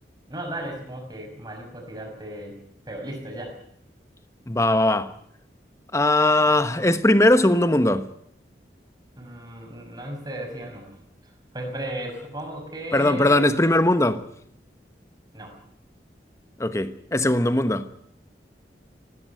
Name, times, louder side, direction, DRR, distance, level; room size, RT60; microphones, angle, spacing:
voice 1, 0.3-2.6 2.9-3.6 9.2-11.0 11.5-13.4 15.3-15.5, right 1 dB, 25° right, 6.0 m, -35 dB
voice 2, 4.5-5.1 5.9-8.1 12.9-14.2 16.6-17.9, left 1 dB, 15° left, 1.1 m, -20 dB
18.0 x 16.5 x 9.3 m
head